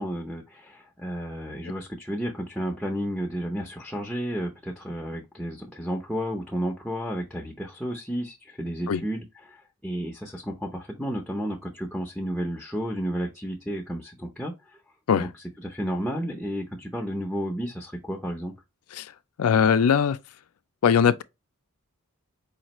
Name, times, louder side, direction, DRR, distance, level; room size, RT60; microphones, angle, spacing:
voice 1, 0.0-14.8 15.2-15.3 15.6-18.5, equal, ahead, 0.6 m, -32 dB
voice 2, 19.4-20.2 20.8-21.2, left 7 dB, 70° left, 0.4 m, -20 dB
5.0 x 2.5 x 2.9 m
head